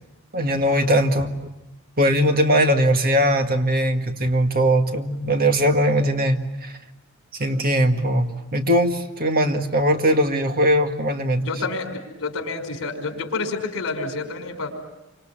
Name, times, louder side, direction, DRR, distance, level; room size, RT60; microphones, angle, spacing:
voice 1, 0.3-1.3 2.0-6.7 7.4-11.6, equal, 45° right, 5 dB, 1.9 m, -20 dB
voice 2, 11.4-14.7, left 3 dB, 65° left, 5 dB, 5.0 m, -29 dB
28.5 x 26.5 x 7.5 m, 0.99 s
head